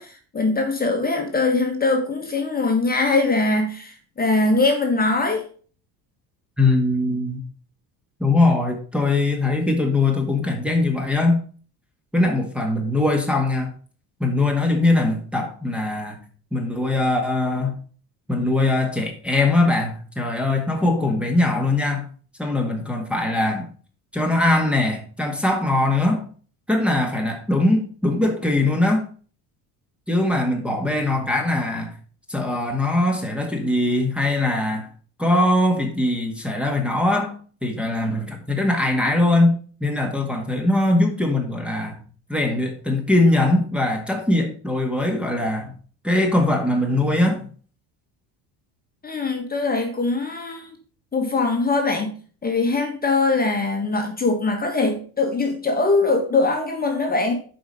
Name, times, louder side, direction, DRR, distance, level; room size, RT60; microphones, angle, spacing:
voice 1, 0.0-5.5 49.0-50.7 51.1-57.4, left 3 dB, 20° left, 1.5 m, -22 dB
voice 2, 6.6-7.4 8.2-11.4 12.1-13.7 14.2-16.2 16.5-17.8 18.3-22.1 22.4-23.7 24.1-26.2 26.7-29.0 30.1-31.9 32.3-34.9 35.2-37.3 37.6-39.5 39.8-42.0 42.3-45.7 46.0-47.4, left 2 dB, 5° right, 1.7 m, -21 dB
7.8 x 5.1 x 5.3 m
cardioid pair, 110°, 43 cm